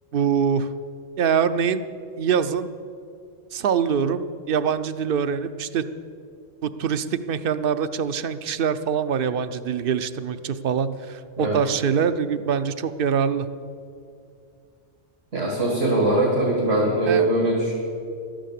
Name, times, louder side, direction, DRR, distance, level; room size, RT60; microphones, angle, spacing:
voice 1, 0.1-0.7 1.2-1.8 2.2-2.7 3.5-5.8 6.6-13.5 17.0-17.3, right 7 dB, 55° right, 13 dB, 0.7 m, -24 dB
voice 2, 15.3-17.7, right 1 dB, 80° right, -3 dB, 2.5 m, -21 dB
12.5 x 10.0 x 8.2 m, 2.4 s
omnidirectional pair, 1.2 m